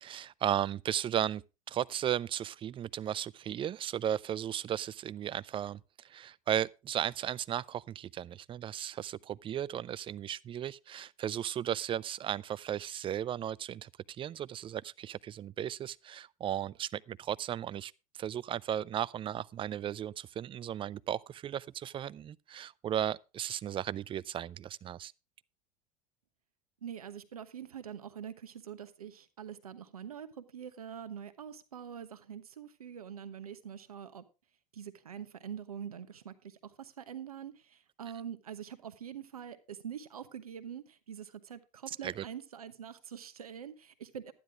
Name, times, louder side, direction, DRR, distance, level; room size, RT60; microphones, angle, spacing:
voice 1, 0.0-1.4 1.7-25.1 41.9-42.2, right 10 dB, 30° right, 0.5 m, -35 dB
voice 2, 26.8-34.2 34.7-44.3, right 8 dB, 90° right, 1.0 m, -45 dB
12.0 x 10.0 x 3.5 m
hypercardioid pair, 85°, 18 cm